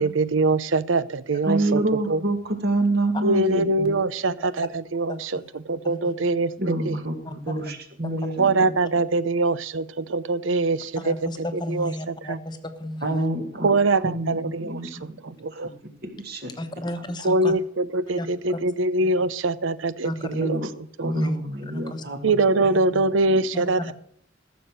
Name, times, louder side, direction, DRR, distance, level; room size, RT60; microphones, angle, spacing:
voice 1, 0.0-1.8 2.1-2.2 3.2-5.3 5.7-6.5 6.9-7.0 8.4-11.1 11.7-11.9 12.3-12.4 13.6-14.7 15.0-15.7 17.2-20.1 20.4-20.6 21.0-21.1 22.2-23.8, right 3 dB, 90° right, 16 dB, 0.7 m, -23 dB
voice 2, 1.4-4.0 6.6-8.8 13.0-15.2 15.5-15.7 16.0-16.5 20.3-20.7 21.0-23.0 23.3-23.4, right 2 dB, 55° right, 4 dB, 2.2 m, -27 dB
voice 3, 5.1-6.1 7.2-7.3 8.0-8.3 11.0-13.3 16.6-17.5 18.2-18.6 19.0-19.1 20.0-20.4 21.0-21.4 21.7-22.0 22.7-22.8 23.5-23.9, left 1 dB, 25° left, 8 dB, 1.1 m, -33 dB
14.5 x 7.0 x 6.5 m, 0.64 s
head